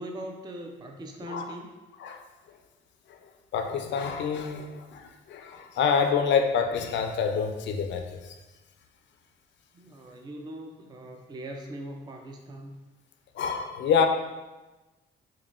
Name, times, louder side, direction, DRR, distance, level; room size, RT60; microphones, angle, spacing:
voice 1, 0.0-1.7 9.7-12.8, right 1 dB, 20° right, 3 dB, 0.4 m, -40 dB
voice 2, 3.5-8.3 13.3-14.1, left 6 dB, 65° left, 6 dB, 0.5 m, -27 dB
5.4 x 2.2 x 2.4 m, 1.1 s
cardioid pair, 90°, 20 cm